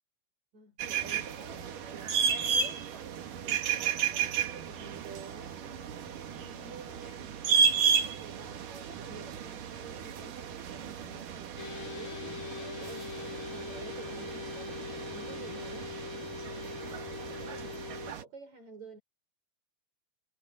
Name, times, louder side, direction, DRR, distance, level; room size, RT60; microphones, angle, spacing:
voice 1, 0.5-2.9 3.3-7.3 7.9-11.6 11.9-15.9 16.8-19.0, right 4 dB, 60° right, 7.9 m, -50 dB
sound 1, 0.8-18.2, right 7 dB, 85° right, 3.5 m, -33 dB
sound 2, 11.6-18.1, left 7 dB, 50° left, 1.6 m, -42 dB
omnidirectional pair, 3.6 m